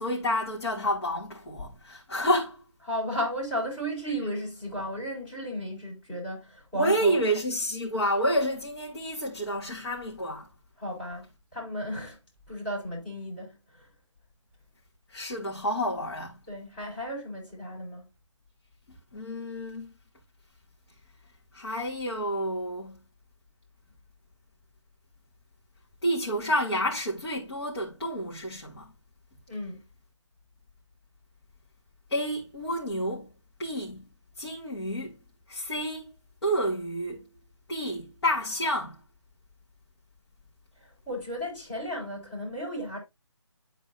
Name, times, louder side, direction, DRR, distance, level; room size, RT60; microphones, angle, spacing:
voice 1, 0.0-2.6 4.1-4.2 6.7-10.5 15.1-16.4 19.1-19.9 21.5-23.0 26.0-28.9 32.1-33.3 33.6-34.0 34.4-35.2 35.5-36.1 36.4-37.3 37.7-39.0, equal, 55° left, 2.9 m, -29 dB
voice 2, 2.9-7.2 10.8-12.2 12.5-13.9 16.5-18.0 29.5-29.8 40.8-43.0, equal, 20° left, 5.4 m, -34 dB
11.5 x 4.5 x 2.8 m
figure-of-eight pair, 165°, 16 cm